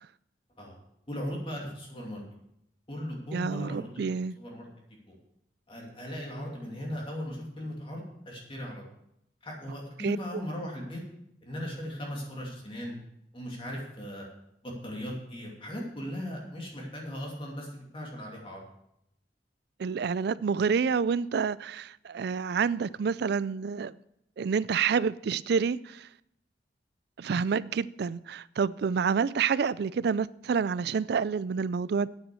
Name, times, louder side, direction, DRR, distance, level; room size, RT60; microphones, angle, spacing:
voice 1, 1.1-2.2 2.9-4.7 5.1-5.2 5.7-8.8 9.4-11.0 11.4-12.9 13.3-14.2 14.6-18.6, equal, 30° left, 2.6 m, -38 dB
voice 2, 3.3-4.4 10.0-10.2 19.8-23.9 24.4-26.1 27.2-32.1, right 6 dB, 60° right, 0.4 m, -28 dB
9.1 x 8.2 x 6.8 m
head